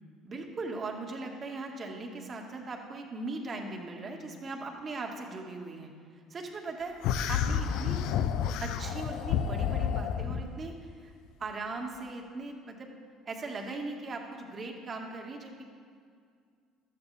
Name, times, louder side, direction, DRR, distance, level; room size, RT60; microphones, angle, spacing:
voice 1, 0.2-5.9 6.3-6.9 7.3-8.0 8.6-11.1 11.4-12.9 13.2-15.6, right 3 dB, 40° right, 2 dB, 1.8 m, -39 dB
sound 1, 7.0-10.5, left 8 dB, 70° left, 0.5 m, -30 dB
14.0 x 12.5 x 3.4 m, 2.2 s
hypercardioid pair, 70°, 0 cm